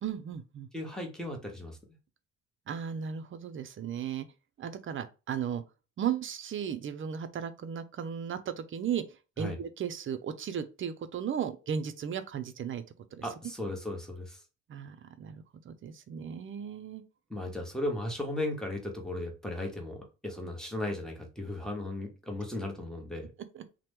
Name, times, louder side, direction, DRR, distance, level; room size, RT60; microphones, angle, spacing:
voice 1, 0.0-0.7 2.7-4.3 4.6-5.6 6.0-9.0 9.4-12.8 13.1-13.2 14.7-17.0 23.5-23.6, right 8 dB, 40° right, 0.4 m, -35 dB
voice 2, 0.7-1.8 9.4-9.6 13.2-14.4 17.3-23.3, left 1 dB, ahead, 0.9 m, -36 dB
2.8 x 2.1 x 3.3 m
cardioid pair, 90°, 30 cm